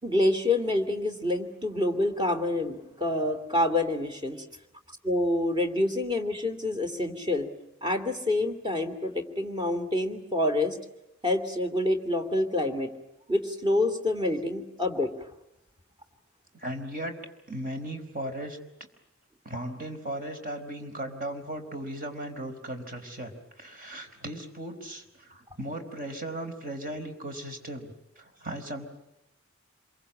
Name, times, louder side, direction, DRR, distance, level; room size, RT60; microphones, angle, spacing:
voice 1, 0.0-4.4 5.0-7.5 7.8-10.8 11.2-12.9 13.3-15.1, left 1 dB, 20° right, 6 dB, 3.0 m, -27 dB
voice 2, 16.5-17.2 17.5-18.6 19.4-27.9 28.2-28.9, right 1 dB, 45° right, 5 dB, 4.4 m, -37 dB
27.0 x 23.0 x 8.7 m, 0.88 s
head